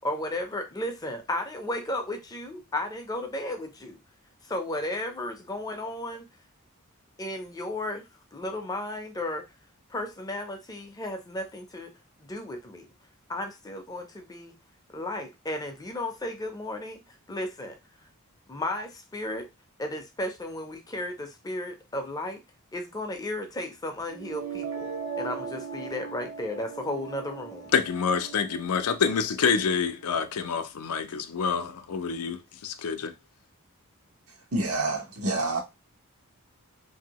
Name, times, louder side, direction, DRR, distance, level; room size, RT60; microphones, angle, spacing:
voice 1, 0.0-4.0 4.5-6.3 7.2-8.0 8.3-9.4 9.9-11.9 12.2-12.9 13.3-14.5 14.9-17.0 17.3-17.8 18.5-19.5 19.8-22.4 22.7-24.9 25.2-27.7, left 1 dB, 15° left, 0.5 m, -34 dB
sound 1, 24.1-30.1, right 6 dB, 60° right, 0.5 m, -39 dB
voice 2, 27.7-33.1, left 6 dB, 90° left, 0.5 m, -27 dB
voice 3, 34.5-35.6, right 2 dB, 85° right, 1.0 m, -27 dB
2.8 x 2.6 x 2.9 m
head